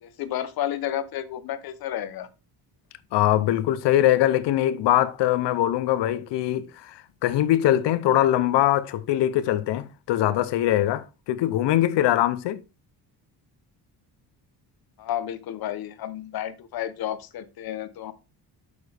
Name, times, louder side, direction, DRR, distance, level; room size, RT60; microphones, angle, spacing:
voice 1, 0.0-2.3 15.0-18.1, left 11 dB, 60° left, 1.0 m, -31 dB
voice 2, 3.1-12.6, left 13 dB, 85° left, 0.8 m, -22 dB
8.2 x 6.9 x 3.4 m
cardioid pair, 175°, 41 cm